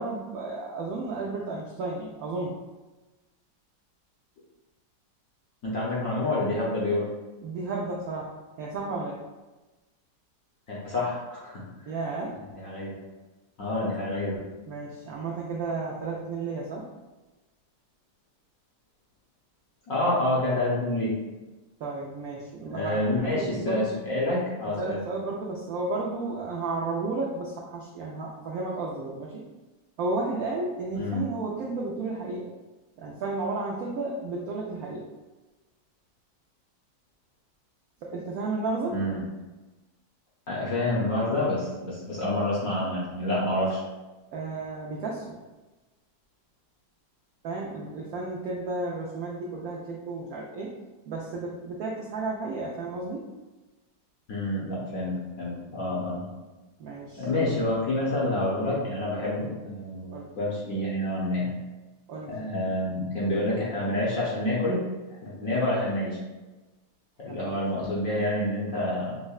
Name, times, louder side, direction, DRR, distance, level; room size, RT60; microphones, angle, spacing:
voice 1, 0.0-2.6 7.4-8.3 8.6-9.2 11.9-12.4 14.7-16.8 21.8-23.0 23.2-24.0 24.8-29.4 30.0-32.5 33.0-35.1 38.0-39.0 44.3-45.4 47.4-50.7 51.1-53.3 56.8-57.3 60.1-60.3 62.1-62.4 67.2-67.5, right 3 dB, 90° right, -3 dB, 0.7 m, -33 dB
voice 2, 5.6-7.1 10.7-11.6 12.5-12.9 13.6-14.4 19.9-21.1 22.7-25.0 30.9-31.2 38.9-39.2 40.5-43.8 54.3-56.3 57.2-61.5 62.3-64.8 65.2-66.2 67.2-69.2, left 1 dB, 60° left, -6 dB, 0.9 m, -28 dB
5.4 x 2.1 x 2.3 m, 1.1 s
omnidirectional pair, 2.1 m